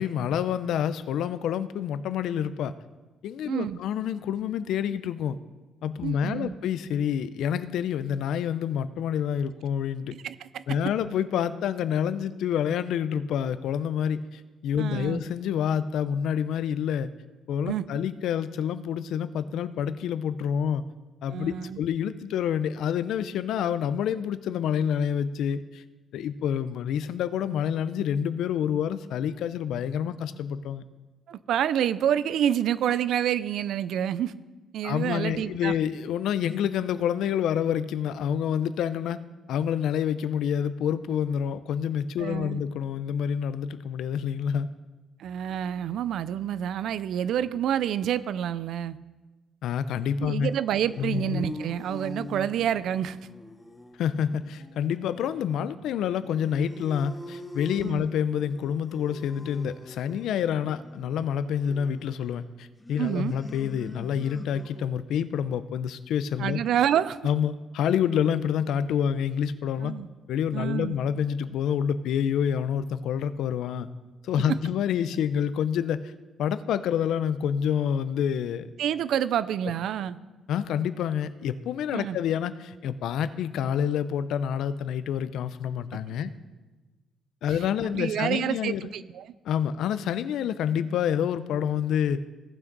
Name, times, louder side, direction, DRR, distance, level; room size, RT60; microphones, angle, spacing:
voice 1, 0.0-2.7 3.2-5.4 5.8-10.1 10.7-17.1 17.5-20.8 21.2-25.8 26.1-30.8 34.8-39.2 39.5-44.7 49.6-50.5 51.0-51.5 54.0-66.6 67.2-69.9 70.3-73.9 74.2-76.1 76.4-78.7 80.5-86.3 87.4-88.9 89.4-92.2, left 8 dB, 70° left, 14 dB, 0.5 m, -28 dB
voice 2, 3.5-3.8 6.0-6.5 10.1-10.8 14.8-15.2 17.6-17.8 21.3-21.9 31.3-34.3 34.7-35.7 42.2-42.6 45.2-49.0 50.2-53.2 57.8-58.0 63.0-63.3 66.4-67.2 69.8-70.1 70.5-71.0 74.5-74.6 78.8-80.2 81.9-82.2 87.9-89.3, right 10 dB, 65° right, 16 dB, 0.4 m, -28 dB
sound 1, 50.5-65.0, left 1 dB, 5° left, 0.7 m, -44 dB
17.0 x 6.1 x 3.9 m, 1.2 s
cardioid pair, 175°, 0 cm